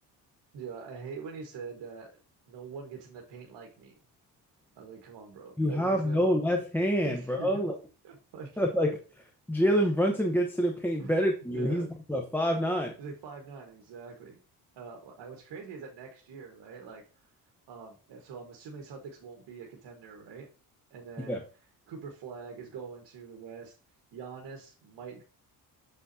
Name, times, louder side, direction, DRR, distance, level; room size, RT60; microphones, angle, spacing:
voice 1, 0.5-2.1 2.5-3.9 4.7-6.2 7.0-7.6 8.0-8.5 11.0-11.2 11.5-11.9 13.0-14.4 14.7-17.3 17.7-20.5 20.9-21.4 21.9-23.7 24.1-25.2, right 5 dB, 80° right, 1 dB, 1.6 m, -44 dB
voice 2, 5.6-7.8 8.6-12.9 21.3-21.4, equal, 5° left, 3 dB, 0.8 m, -27 dB
6.9 x 6.1 x 2.8 m, 0.36 s
cardioid pair, 125°, 41 cm